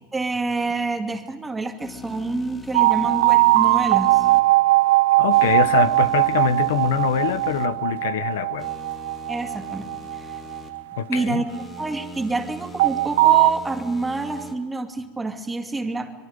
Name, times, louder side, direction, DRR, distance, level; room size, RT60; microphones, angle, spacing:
voice 1, 0.1-4.3 9.3-9.9 10.2-10.4 11.1-11.4 11.8-16.3, right 3 dB, 10° right, 4 dB, 2.3 m, -27 dB
sound 1, 1.8-4.4 5.3-7.7 8.6-10.7 11.5-14.5, left 2 dB, 15° left, 2.5 m, -41 dB
sound 2, 2.7-11.8 12.8-13.5, right 19 dB, 80° right, 0.6 m, -20 dB
voice 2, 5.2-8.7 11.0-11.4, left 9 dB, 80° left, 14 dB, 1.0 m, -24 dB
24.5 x 22.5 x 5.3 m, 1.3 s
supercardioid pair, 135°, 0 cm